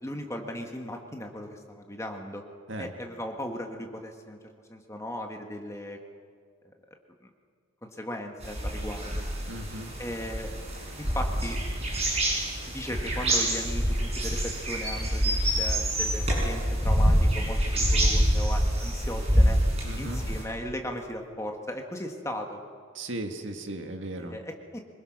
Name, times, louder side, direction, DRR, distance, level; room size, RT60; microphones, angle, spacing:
voice 1, 0.0-2.4 2.8-4.4 4.7-6.0 7.2-7.3 7.8-9.2 10.0-10.5 11.0-11.6 12.6-19.6 20.0-22.6 24.2-24.8, left 1 dB, 15° left, 3 dB, 1.7 m, -37 dB
sound 1, 8.4-20.4, equal, 30° right, 6.4 m, -26 dB
voice 2, 9.5-9.9 19.8-20.2 22.9-24.4, right 1 dB, 65° right, 5 dB, 1.9 m, -36 dB
25.5 x 22.0 x 6.1 m, 2.1 s
head